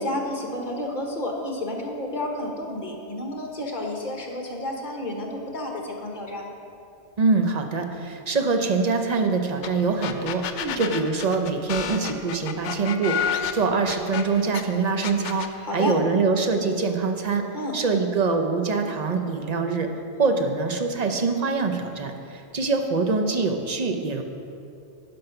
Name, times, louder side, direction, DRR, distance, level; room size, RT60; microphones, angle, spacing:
voice 1, 0.0-6.5 10.5-10.8 15.6-16.0 17.5-17.7, left 1 dB, 40° left, 1 dB, 1.4 m, -31 dB
voice 2, 7.2-17.4 17.7-19.9 20.2-24.2, right 4 dB, 40° right, 5 dB, 0.7 m, -24 dB
sound 1, 9.6-9.7 10.0-14.6 15.0-15.5, left 8 dB, 80° left, 0.9 m, -30 dB
11.0 x 5.4 x 5.7 m, 2.6 s
omnidirectional pair, 1.2 m